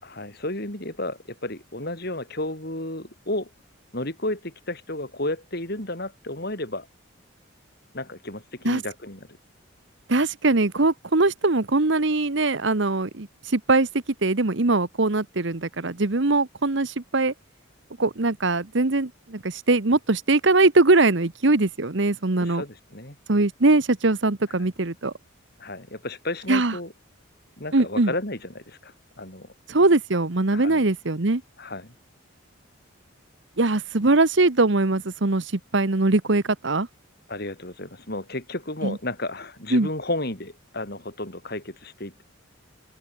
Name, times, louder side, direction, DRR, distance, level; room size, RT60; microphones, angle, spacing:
voice 1, 0.0-3.5 3.9-6.9 7.9-9.3 22.4-23.1 25.6-26.9 27.6-29.5 30.5-30.8 31.6-31.9 37.3-42.2, left 1 dB, 50° left, 5.2 m, -32 dB
voice 2, 10.1-13.3 13.5-13.9 14.2-17.3 18.0-22.6 23.3-25.1 26.5-26.7 27.7-28.1 29.7-31.4 33.6-36.9 38.8-39.0 39.7-39.9, right 2 dB, 60° right, 1.1 m, -21 dB
open air
head